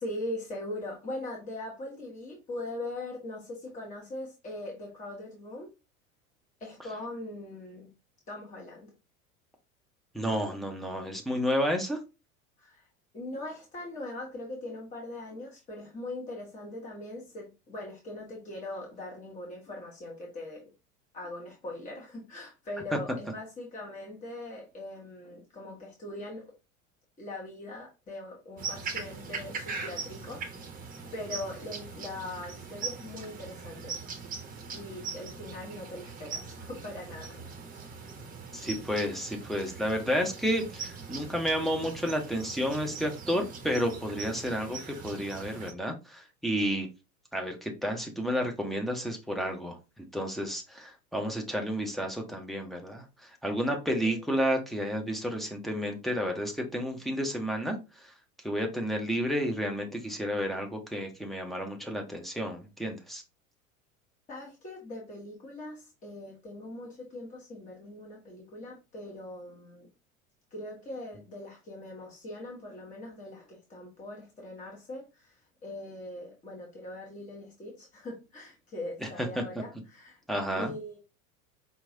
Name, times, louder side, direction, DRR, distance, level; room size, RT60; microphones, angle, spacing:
voice 1, 0.0-5.7 6.6-7.9 8.3-8.9 12.6-12.9 13.1-20.6 21.1-26.5 27.2-30.8 31.1-33.9 34.7-37.4 37.7-37.9 53.9-54.2 64.3-69.9 70.5-80.2 80.5-81.0, left 1 dB, 20° left, 1.0 m, -41 dB
voice 2, 10.1-12.0 38.5-46.9 47.3-49.8 50.1-53.0 53.4-57.8 58.4-63.2 80.3-80.7, equal, ahead, 0.4 m, -31 dB
sound 1, 28.6-45.7, right 4 dB, 20° right, 0.8 m, -41 dB
4.8 x 2.9 x 2.7 m
figure-of-eight pair, 80°, 42 cm